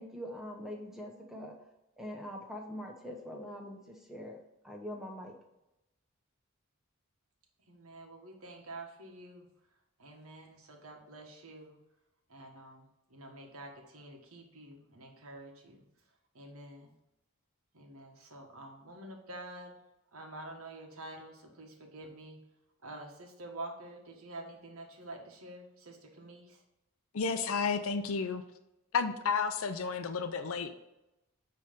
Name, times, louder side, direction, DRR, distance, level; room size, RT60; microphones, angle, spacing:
voice 1, 0.0-1.5 2.0-4.4 4.6-5.3, equal, ahead, 1 dB, 0.8 m, -43 dB
voice 2, 7.7-9.5 10.0-11.8 12.3-15.8 16.3-16.9 17.7-19.8 20.1-22.4 22.8-26.6, right 2 dB, 80° right, 2 dB, 1.4 m, -48 dB
voice 3, 27.1-28.4 28.9-30.7, left 5 dB, 75° left, 8 dB, 0.5 m, -31 dB
9.0 x 3.3 x 5.1 m, 0.92 s
head